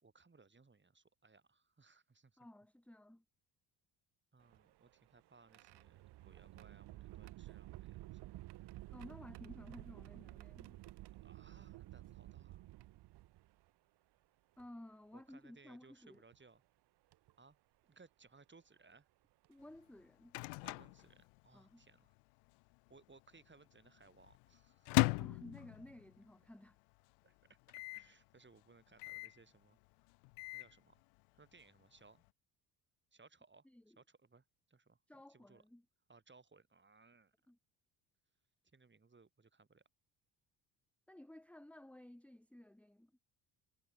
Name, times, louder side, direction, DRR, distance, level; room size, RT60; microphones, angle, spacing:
voice 1, 0.0-2.5 4.3-8.1 11.2-12.6 15.1-16.6 17.4-17.6 17.8-19.1 20.6-22.1 22.9-25.1 27.2-29.8 30.5-31.0 31.3-32.2 33.1-33.7 34.0-35.0 35.3-35.6 36.1-37.4 38.7-39.8, right 4 dB, 25° right, 3.4 m, -65 dB
voice 2, 2.4-3.2 8.9-10.8 14.6-16.2 19.5-20.3 21.5-21.8 25.0-26.8 33.6-34.0 35.1-35.8 37.5-37.6 41.1-43.1, left 1 dB, 5° left, 1.3 m, -55 dB
sound 1, 4.4-13.7 14.6-14.7 16.1-16.4 17.1-17.3 18.9-19.0 19.4-19.7, right 17 dB, 55° right, 0.8 m, -53 dB
Microwave oven, 19.7-21.9 22.2-22.3 22.5-23.0 23.5-26.3 26.7-26.8 27.0-27.1 27.7-28.1 29.0-29.4 30.1-30.8, left 39 dB, 80° left, 0.6 m, -38 dB
hypercardioid pair, 65°, 48 cm